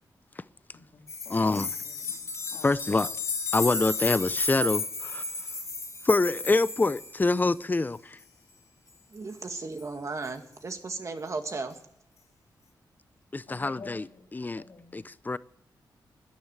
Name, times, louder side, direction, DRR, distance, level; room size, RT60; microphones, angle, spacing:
voice 1, 0.7-2.3 2.5-2.7 13.5-14.2 14.6-15.0, left 4 dB, 65° left, 3.1 m, -50 dB
sound 1, 1.1-7.5 9.8-9.9, left 3 dB, 45° left, 2.2 m, -33 dB
voice 2, 1.3-1.8 2.6-3.1 3.5-5.2 6.0-8.2 13.3-14.1 14.3-14.6 14.9-15.4, left 3 dB, 25° left, 0.5 m, -26 dB
voice 3, 9.1-11.8, right 3 dB, 40° right, 2.0 m, -35 dB
12.5 x 10.5 x 8.9 m
wide cardioid pair, 100°, 8 cm